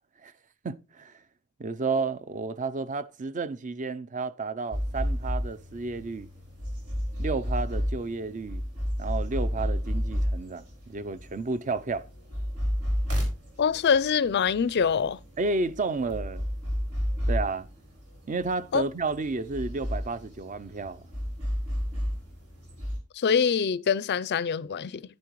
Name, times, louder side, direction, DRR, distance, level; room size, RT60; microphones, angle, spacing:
voice 1, 0.6-1.1 1.6-6.3 7.2-8.6 9.0-12.0 15.4-16.5 17.3-17.7 18.3-21.1, right 3 dB, 35° right, 0.5 m, -31 dB
sound 1, 4.7-23.0, equal, 80° right, 5.0 m, -32 dB
voice 2, 13.6-15.2 18.7-18.8 23.1-25.0, left 6 dB, 50° left, 0.4 m, -24 dB
10.5 x 10.5 x 3.0 m
head